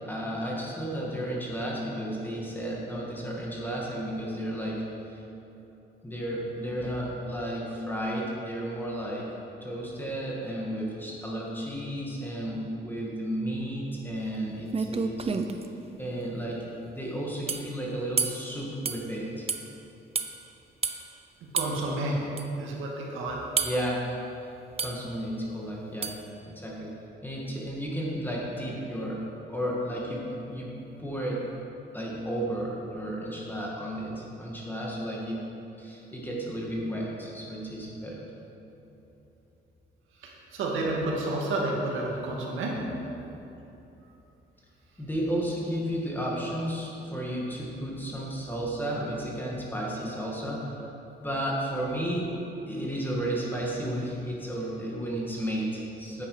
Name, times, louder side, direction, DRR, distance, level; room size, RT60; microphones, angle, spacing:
voice 1, 0.0-5.2 6.0-9.3 9.6-15.3 16.0-19.5 23.6-24.0 24.8-26.1 26.5-26.9 27.2-29.2 29.5-31.4 31.9-35.4 35.8-38.3 45.0-50.9 51.2-52.3 52.7-56.3, right 1 dB, 10° left, -4 dB, 2.1 m, -33 dB
sound 1, 14.3-14.4 14.7-15.7 17.5-17.7 18.2-18.5 18.9-19.0 19.5-19.6 20.2-20.3 20.8-21.0 21.6-21.8 22.4-22.5 23.6-23.9 24.8-25.0 26.0-26.2, right 5 dB, 30° right, 0.6 m, -29 dB
voice 2, 21.5-22.2 22.6-23.4 40.2-42.7, right 2 dB, 85° right, -2 dB, 2.0 m, -30 dB
9.5 x 8.6 x 5.0 m, 3.0 s
cardioid pair, 90°, 20 cm